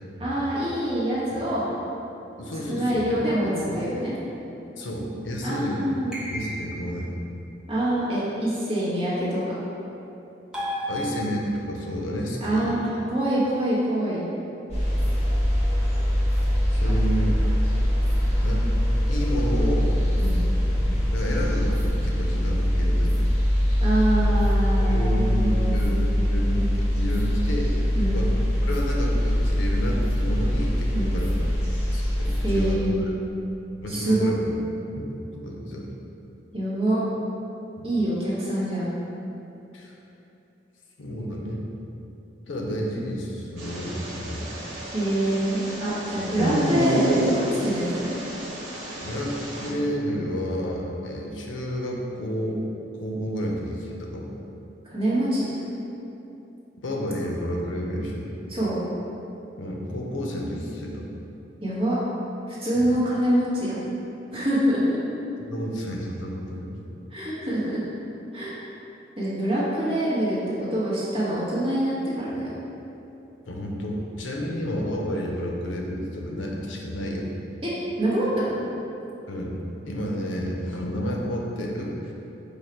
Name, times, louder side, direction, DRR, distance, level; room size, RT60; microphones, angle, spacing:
voice 1, 0.2-1.6 2.7-4.1 5.4-6.2 7.7-9.4 12.4-14.2 20.1-20.4 23.8-25.8 27.9-28.2 30.9-31.1 32.4-33.1 33.9-34.3 36.5-37.0 37.8-38.9 44.9-48.2 54.8-55.6 58.5-58.8 61.6-62.0 62.5-63.8 64.3-65.0 67.1-67.8 68.3-68.5 69.2-72.5 74.4-74.6 77.6-77.7 78.0-78.6, right 1 dB, 30° right, -9 dB, 1.1 m, -25 dB
voice 2, 2.4-3.8 4.8-7.1 10.5-12.8 16.7-17.3 18.4-18.7 19.0-19.9 21.1-23.2 24.2-24.3 24.8-27.7 28.1-28.3 28.6-31.4 31.9-33.1 33.8-34.6 34.9-35.9 37.8-37.9 39.7-39.9 41.0-41.6 42.5-44.5 46.2-46.3 49.0-49.4 49.6-52.7 53.0-54.3 56.8-58.3 59.6-61.1 62.7-62.9 65.5-66.7 73.5-77.3 79.3-79.6 79.9-82.1, equal, 90° left, -1 dB, 0.6 m, -30 dB
sound 1, 6.1-7.0 10.5-11.8, equal, 5° right, 0.6 m, -33 dB
sound 2, 14.7-32.7, equal, 35° left, 1.2 m, -23 dB
sound 3, 43.6-49.7, right 1 dB, 85° right, 1.0 m, -29 dB
5.0 x 2.4 x 4.3 m, 2.9 s
head